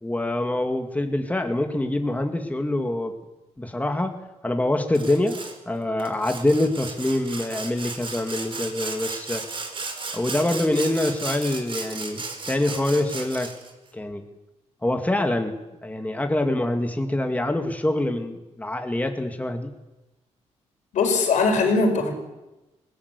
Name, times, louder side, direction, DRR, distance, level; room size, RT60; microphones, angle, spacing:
voice 1, 0.0-3.1 3.6-4.2 4.4-5.4 5.7-9.4 10.1-13.5 13.9-14.2 14.8-15.6 15.8-19.7, left 1 dB, 10° left, 5 dB, 2.2 m, -25 dB
Sawing, 4.9-5.6 6.0-13.7, right 3 dB, 45° right, 4.2 m, -35 dB
voice 2, 20.9-22.1, left 3 dB, 80° left, 4 dB, 5.1 m, -20 dB
20.0 x 18.0 x 8.3 m, 1.0 s
cardioid pair, 75°, 12 cm